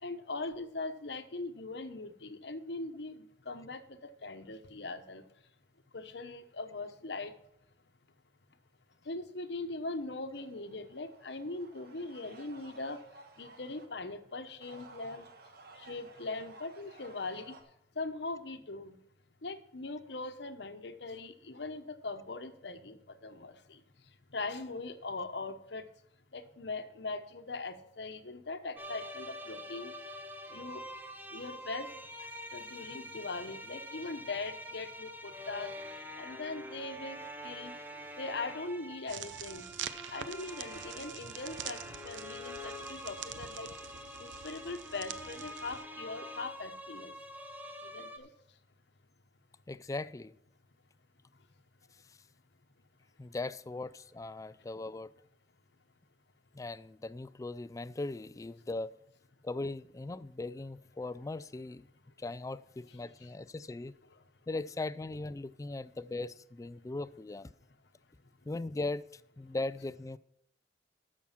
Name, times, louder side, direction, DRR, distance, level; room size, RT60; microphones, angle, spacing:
voice 1, 0.0-5.2 5.9-7.3 9.0-13.0 13.4-15.3 15.8-17.6 18.0-19.0 19.4-23.8 24.3-25.9 26.3-29.9 30.5-30.8 31.3-31.9 32.2-35.7 36.2-37.7 38.2-39.7 40.1-43.7 44.2-47.1 47.8-48.3 62.9-63.3 64.1-64.2, left 3 dB, 65° left, 1.0 m, -41 dB
sound 1, 10.3-13.9 14.4-17.6, right 3 dB, 55° right, 1.4 m, -55 dB
sound 2, 28.8-48.2, equal, 10° right, 1.0 m, -46 dB
sound 3, 39.1-45.8, right 9 dB, 80° right, 0.6 m, -45 dB
voice 2, 49.7-50.3 53.2-55.1 56.5-58.9 59.4-61.8 62.2-63.9 64.5-67.5 68.5-70.2, left 2 dB, 20° left, 0.3 m, -39 dB
13.0 x 6.2 x 5.8 m
head